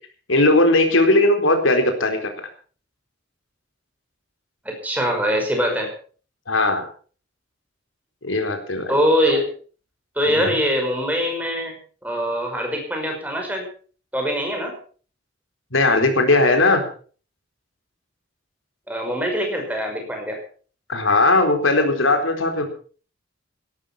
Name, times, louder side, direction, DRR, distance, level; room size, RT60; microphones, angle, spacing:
voice 1, 0.3-2.3 6.5-6.8 8.2-8.9 9.3-9.4 10.3-10.6 15.7-16.9 20.9-22.6, left 2 dB, 90° left, 6 dB, 4.2 m, -18 dB
voice 2, 4.6-5.9 8.9-9.5 10.2-13.7 14.1-14.7 18.9-20.4, equal, 10° right, 2 dB, 5.7 m, -23 dB
17.0 x 12.5 x 5.8 m, 0.42 s
head